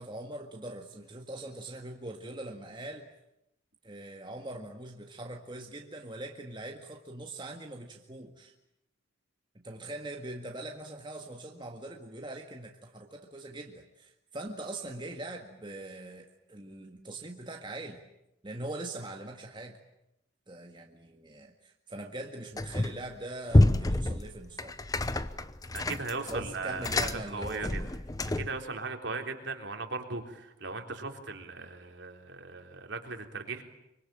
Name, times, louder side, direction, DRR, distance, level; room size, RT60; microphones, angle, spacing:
voice 1, 0.0-3.1 3.8-8.5 9.6-18.0 18.4-19.8 20.5-24.8 26.3-27.9, right 2 dB, 25° right, 2 dB, 1.9 m, -42 dB
sound 1, 22.6-23.1 23.5-28.6, left 1 dB, 20° left, 0.9 m, -28 dB
voice 2, 25.7-27.8 28.4-33.6, right 3 dB, 60° right, 4 dB, 3.6 m, -38 dB
25.0 x 24.5 x 8.9 m, 0.84 s
head